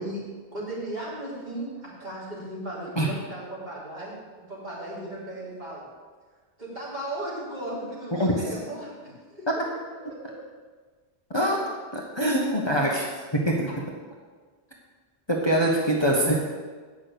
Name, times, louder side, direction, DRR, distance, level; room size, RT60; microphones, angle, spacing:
voice 1, 0.0-4.2 4.5-5.9 6.6-9.5 10.1-10.4, right 1 dB, 40° right, -7 dB, 3.7 m, -36 dB
voice 2, 12.1-13.1 13.5-13.7 15.3-16.3, right 1 dB, 25° left, -2 dB, 1.2 m, -23 dB
8.6 x 6.2 x 8.3 m, 1.4 s
omnidirectional pair, 1.1 m